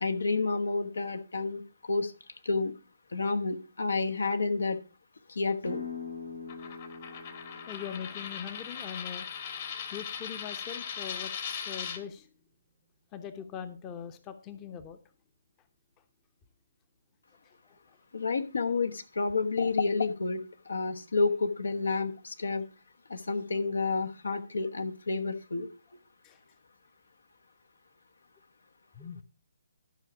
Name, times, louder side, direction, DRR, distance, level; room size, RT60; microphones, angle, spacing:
voice 1, 0.0-1.6 1.9-2.1 2.4-2.7 3.1-4.8 5.3-5.8 18.1-20.4 20.7-22.7 23.1-25.7, left 3 dB, 70° left, 9 dB, 1.2 m, -29 dB
sound 1, 5.6-11.2, left 5 dB, 85° left, 3.2 m, -45 dB
Coin (dropping), 6.5-12.0, left 7 dB, 40° left, 1.5 m, -39 dB
voice 2, 7.7-9.3 9.9-12.3 13.1-15.0 26.2-26.4 28.9-29.2, left 8 dB, 20° left, 10 dB, 0.9 m, -41 dB
12.5 x 5.9 x 5.0 m, 0.33 s
figure-of-eight pair, 140°, 0 cm